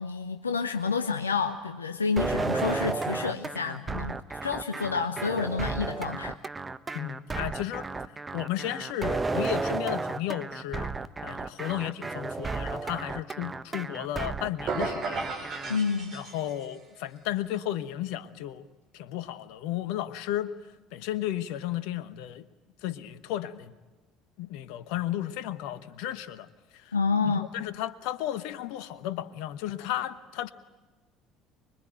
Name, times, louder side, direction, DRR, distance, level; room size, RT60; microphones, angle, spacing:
voice 1, 0.0-6.4 15.7-16.1 26.9-27.5, left 5 dB, 80° left, 7 dB, 0.8 m, -29 dB
sound 1, 2.2-15.8, right 3 dB, 20° right, 1.1 m, -33 dB
voice 2, 6.9-10.9 11.2-15.2 16.1-18.6 18.9-20.5 20.9-22.5 22.8-23.7 24.4-26.9 27.2-30.5, left 12 dB, 60° left, 14 dB, 1.1 m, -34 dB
sound 2, 14.7-16.8, right 4 dB, 45° right, 7.2 m, -34 dB
25.0 x 22.5 x 9.2 m, 1.2 s
figure-of-eight pair, 60°, 0 cm